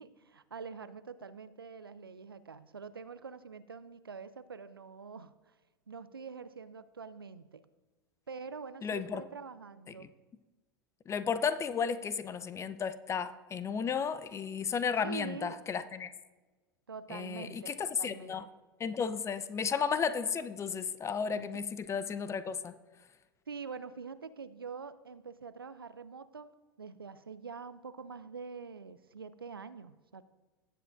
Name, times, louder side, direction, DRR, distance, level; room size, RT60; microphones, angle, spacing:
voice 1, 0.0-5.5 5.9-7.6 8.3-10.1 15.0-15.6 16.9-18.5 21.3-21.6 23.5-26.5 26.8-30.2, right 5 dB, 90° right, 14 dB, 0.5 m, -45 dB
voice 2, 8.8-9.2 11.1-16.1 17.1-18.4 18.8-22.7, left 6 dB, 25° left, 13 dB, 0.6 m, -33 dB
17.0 x 7.8 x 2.5 m, 1.2 s
figure-of-eight pair, 85°, 12 cm